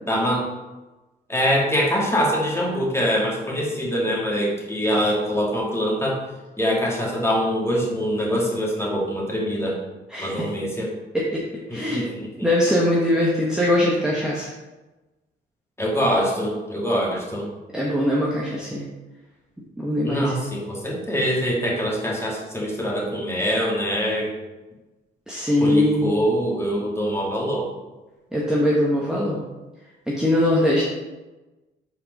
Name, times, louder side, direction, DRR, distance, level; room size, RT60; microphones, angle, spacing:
voice 1, 0.0-0.5 1.3-6.2 6.6-9.8 10.2-10.9 11.7-12.5 15.8-17.5 20.0-24.3 25.6-27.7, equal, 15° left, -3 dB, 2.3 m, -24 dB
voice 2, 10.1-10.5 11.1-11.4 11.7-12.0 12.4-14.5 17.7-18.8 19.8-20.3 25.3-26.1 28.3-29.4 30.1-30.8, left 1 dB, 5° right, -5 dB, 1.4 m, -21 dB
6.2 x 4.4 x 5.3 m, 1.1 s
cardioid pair, 90°, 20 cm